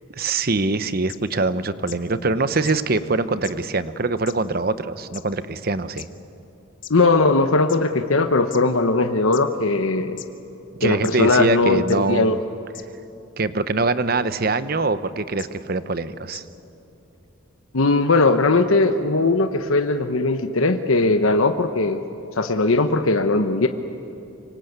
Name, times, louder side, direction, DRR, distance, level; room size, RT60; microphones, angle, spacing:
voice 1, 0.2-6.1 10.8-12.4 13.4-16.4, right 3 dB, 45° right, 13 dB, 0.9 m, -23 dB
sound 1, 1.1-1.2 1.9-2.0 2.6-2.8 3.4-3.5 4.3-4.4 5.1-5.2 6.0-6.1 6.8-6.9 7.7-7.8 8.5-8.6 9.3-9.4 10.2-10.3 11.0-11.1 11.9-12.0 12.7-12.8 14.1-14.3 15.4-15.5 16.3-16.4, left 12 dB, 60° left, 1.3 m, -37 dB
voice 2, 6.9-10.2 10.8-12.4 17.7-22.0 22.4-23.7, left 3 dB, 80° left, 7 dB, 1.1 m, -19 dB
25.5 x 24.5 x 8.1 m, 2.9 s
head